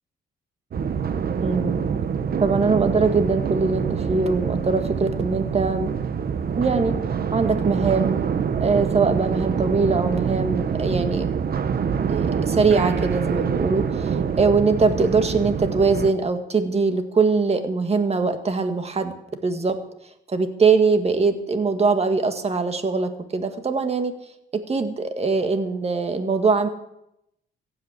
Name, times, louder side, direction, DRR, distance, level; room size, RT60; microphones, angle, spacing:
sound 1, 0.7-16.1, right 7 dB, 50° right, 1.1 m, -25 dB
voice 1, 1.4-1.8 2.4-5.9 6.5-7.0 7.3-8.2 8.6-11.3 12.1-19.1 19.4-19.8 20.3-24.1 24.5-26.7, right 4 dB, 30° right, 8 dB, 1.9 m, -22 dB
15.0 x 8.4 x 8.3 m, 0.82 s
cardioid pair, 90°, 20 cm